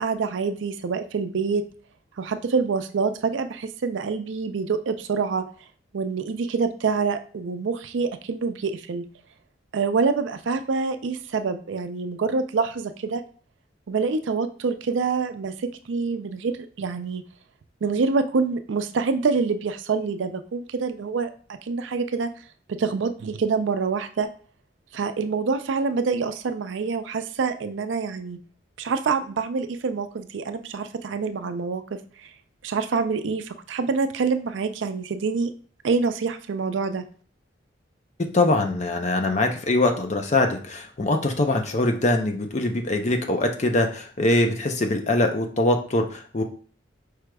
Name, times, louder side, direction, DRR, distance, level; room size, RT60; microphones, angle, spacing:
voice 1, 0.0-1.6 2.2-5.5 5.9-9.1 9.7-13.2 13.9-17.2 17.8-22.3 22.7-24.3 24.9-28.4 28.8-32.3 32.6-35.5 35.8-37.1, right 4 dB, 80° right, 9 dB, 0.4 m, -26 dB
voice 2, 38.3-46.4, left 2 dB, 40° left, 5 dB, 0.6 m, -23 dB
4.8 x 4.6 x 2.3 m, 0.42 s
head